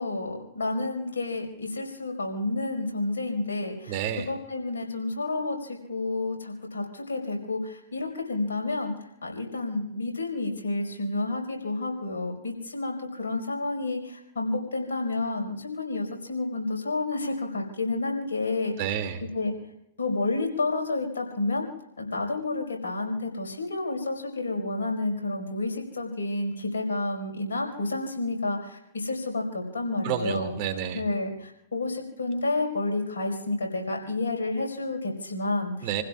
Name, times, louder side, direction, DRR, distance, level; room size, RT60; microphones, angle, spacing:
voice 1, 0.0-3.9 4.3-8.9 9.2-18.7 19.3-19.5 20.0-21.7 22.0-30.5 30.9-35.9, left 2 dB, 85° left, 1 dB, 5.1 m, -30 dB
voice 2, 3.9-4.3 18.8-19.2 30.0-31.0 35.8-36.0, right 9 dB, 50° right, 6 dB, 2.6 m, -29 dB
29.5 x 16.0 x 2.5 m, 0.80 s
hypercardioid pair, 115°, 0 cm